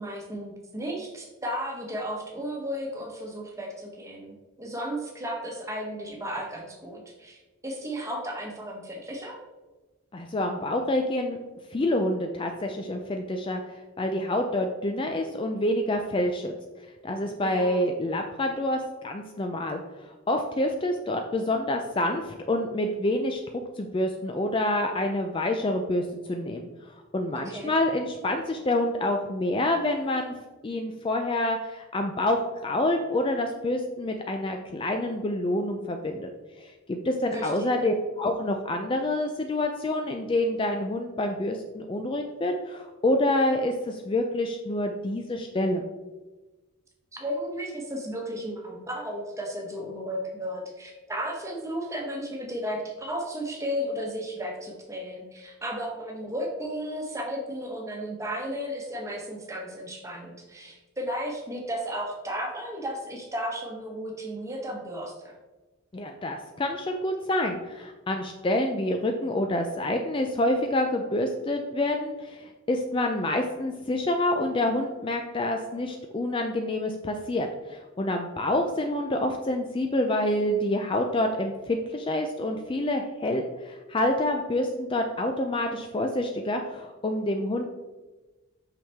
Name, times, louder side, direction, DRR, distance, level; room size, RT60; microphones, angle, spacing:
voice 1, 0.0-9.4 17.4-17.8 27.4-27.7 37.3-38.0 47.1-65.3, equal, 15° right, 0 dB, 1.1 m, -34 dB
voice 2, 10.1-11.4 11.7-16.5 17.0-23.4 23.8-30.3 30.6-36.3 36.6-45.8 65.9-87.7, left 1 dB, 25° left, 4 dB, 0.4 m, -27 dB
5.7 x 5.6 x 3.4 m, 1.2 s
head